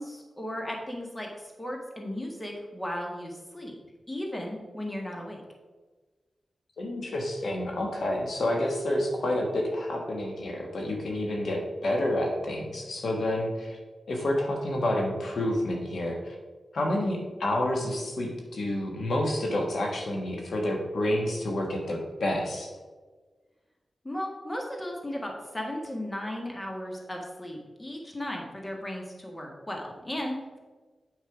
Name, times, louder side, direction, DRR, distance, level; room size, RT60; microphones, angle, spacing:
voice 1, 0.0-3.7 4.1-5.4 24.0-30.6, left 1 dB, 20° left, 0 dB, 1.7 m, -36 dB
voice 2, 6.8-13.8 14.1-16.3 16.7-22.7, left 1 dB, 75° left, 1 dB, 1.4 m, -29 dB
8.3 x 5.5 x 4.9 m, 1.3 s
wide cardioid pair, 90°, 0 cm